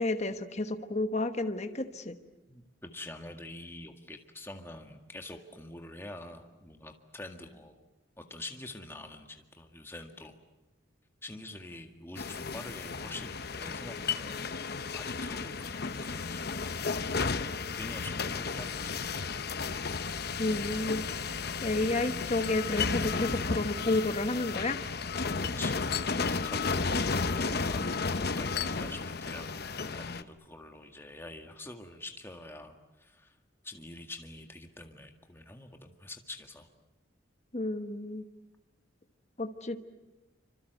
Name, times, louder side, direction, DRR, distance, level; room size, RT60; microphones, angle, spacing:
voice 1, 0.0-2.1 20.4-21.0 21.6-24.8 37.5-38.3 39.4-39.8, left 2 dB, 35° left, 8 dB, 1.3 m, -31 dB
voice 2, 2.5-7.8 8.2-10.4 11.2-14.4 14.9-16.6 17.8-19.0 25.4-33.4 33.6-36.7, left 2 dB, 10° left, 4 dB, 1.9 m, -46 dB
sound 1, 12.2-30.2, left 4 dB, 50° left, 0.9 m, -33 dB
27.0 x 26.0 x 8.1 m, 1.0 s
head